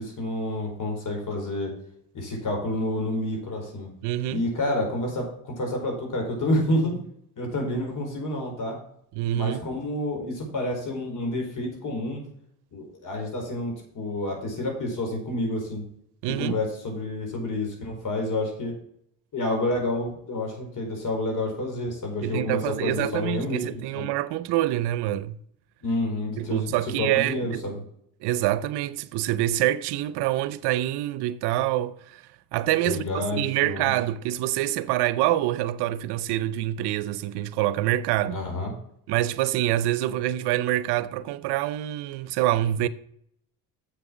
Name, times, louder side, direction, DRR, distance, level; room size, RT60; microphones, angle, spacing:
voice 1, 0.0-1.7 2.1-3.9 4.3-7.0 7.4-8.8 9.3-12.2 12.7-15.8 16.4-18.7 19.3-24.1 25.8-27.8 32.8-33.9 38.3-38.7, left 1 dB, 50° left, 4.5 m, -29 dB
voice 2, 4.0-4.4 9.2-9.6 16.2-16.6 22.2-25.4 26.4-27.6 28.2-32.2 32.5-38.4 39.1-42.9, right 14 dB, 85° right, 0.7 m, -26 dB
7.5 x 7.0 x 6.2 m
supercardioid pair, 80°, 39 cm